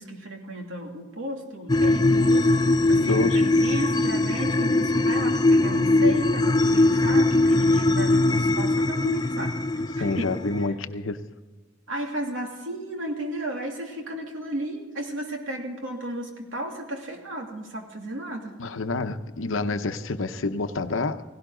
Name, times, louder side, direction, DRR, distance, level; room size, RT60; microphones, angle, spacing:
voice 1, 0.0-10.3 11.9-18.6, right 1 dB, 80° right, 1 dB, 2.7 m, -34 dB
sound 1, 1.7-10.7, left 2 dB, 20° left, 0.5 m, -21 dB
voice 2, 2.9-3.5 9.9-11.2 18.6-21.2, left 3 dB, 80° left, 9 dB, 0.8 m, -28 dB
17.0 x 17.0 x 3.8 m, 1.3 s
head